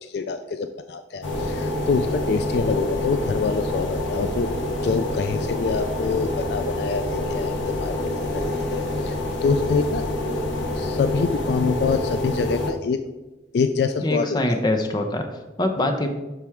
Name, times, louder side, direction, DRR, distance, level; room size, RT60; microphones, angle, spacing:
voice 1, 0.0-4.5 4.8-8.0 8.3-9.2 9.4-10.1 10.8-13.0 13.5-14.6, left 5 dB, 60° left, 9 dB, 0.3 m, -25 dB
sound 1, 1.2-12.7, left 1 dB, 80° left, 1.0 m, -27 dB
voice 2, 14.0-16.1, left 1 dB, 20° left, 5 dB, 0.7 m, -24 dB
7.5 x 6.0 x 3.5 m, 1.1 s
head